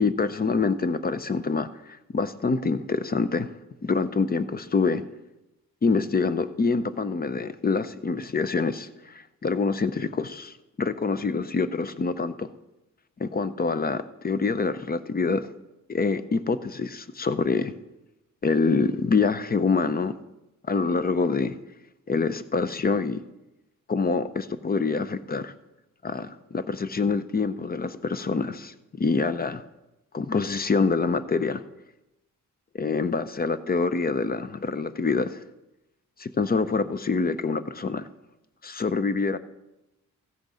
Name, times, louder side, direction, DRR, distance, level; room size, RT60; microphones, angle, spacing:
voice 1, 0.0-3.5 3.8-5.0 5.8-12.5 13.2-15.5 15.9-17.7 18.4-20.2 20.7-21.6 22.1-23.2 23.9-25.5 26.0-29.6 30.1-31.6 32.8-35.4 36.2-38.1 38.6-39.4, left 4 dB, 30° left, 14 dB, 0.5 m, -26 dB
15.0 x 6.5 x 4.9 m, 0.97 s
cardioid pair, 95°, 33 cm